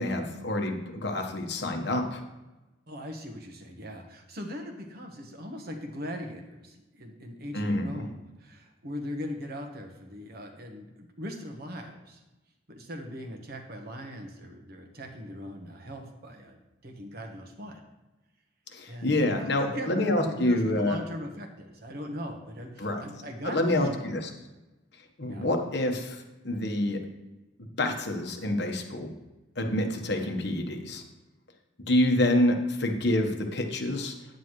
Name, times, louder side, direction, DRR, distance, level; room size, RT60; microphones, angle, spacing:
voice 1, 0.0-2.2 7.5-7.8 18.7-21.0 22.8-23.0 23.4-24.3 25.2-27.0 27.8-29.1 29.6-31.0 31.9-34.1, left 1 dB, 60° left, 3 dB, 1.3 m, -27 dB
voice 2, 2.9-12.2 12.7-17.8 18.9-24.2 25.3-25.5, equal, 55° right, 4 dB, 1.2 m, -40 dB
9.3 x 9.0 x 3.2 m, 1.1 s
head